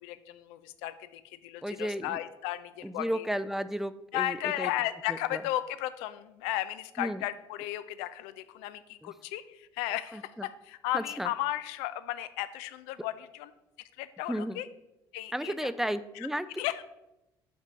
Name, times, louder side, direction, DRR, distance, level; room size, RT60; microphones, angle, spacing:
voice 1, 0.0-3.3 4.1-13.5 14.0-14.7 15.1-15.7 16.2-16.3 16.6-16.8, left 14 dB, 75° left, 13 dB, 0.4 m, -35 dB
voice 2, 1.6-2.2 2.8-4.7 5.1-5.4 7.0-7.2 9.0-9.1 10.1-10.5 10.9-11.3 14.3-14.6 15.3-16.5, equal, 5° right, 13 dB, 0.4 m, -33 dB
5.3 x 5.1 x 4.0 m, 0.93 s
hypercardioid pair, 55°, 12 cm